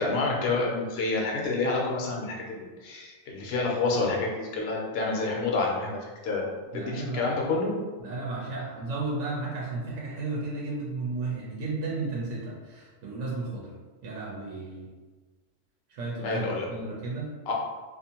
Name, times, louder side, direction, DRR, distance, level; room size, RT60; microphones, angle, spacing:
voice 1, 0.0-6.5 6.7-7.7 16.2-16.7 17.5-17.6, left 3 dB, 65° left, -1 dB, 0.8 m, -28 dB
voice 2, 6.7-7.3 8.0-13.7 14.0-14.9 15.9-17.5, right 3 dB, 90° right, -4 dB, 0.9 m, -34 dB
2.5 x 2.5 x 2.8 m, 1.3 s
omnidirectional pair, 1.2 m